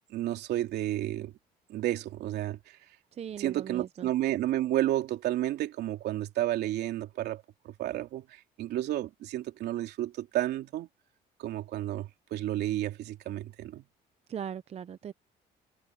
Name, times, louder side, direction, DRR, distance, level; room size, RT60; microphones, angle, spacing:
voice 1, 0.1-1.3 1.7-2.8 3.4-10.9 11.4-13.8, right 14 dB, 75° right, 3.2 m, -31 dB
voice 2, 3.2-4.1 14.3-15.1, right 8 dB, 40° right, 0.6 m, -39 dB
cardioid pair, 110°, 17 cm